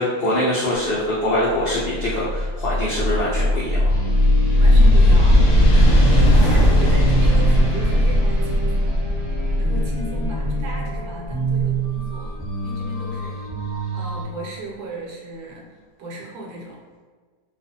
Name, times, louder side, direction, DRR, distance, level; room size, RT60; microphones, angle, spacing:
voice 1, 0.0-4.0, left 1 dB, 85° left, -8 dB, 0.5 m, -23 dB
sound 1, 1.5-12.3, left 1 dB, 70° left, 0.9 m, -17 dB
sound 2, 3.9-14.2, right 4 dB, 20° right, 0.4 m, -29 dB
voice 2, 4.6-9.1 9.5-12.4 12.6-13.4 13.9-16.8, right 2 dB, 75° right, -2 dB, 1.1 m, -35 dB
Bass guitar, 5.5-11.7, left 1 dB, 40° left, 0.9 m, -35 dB
2.4 x 2.4 x 2.6 m, 1.4 s
omnidirectional pair, 1.7 m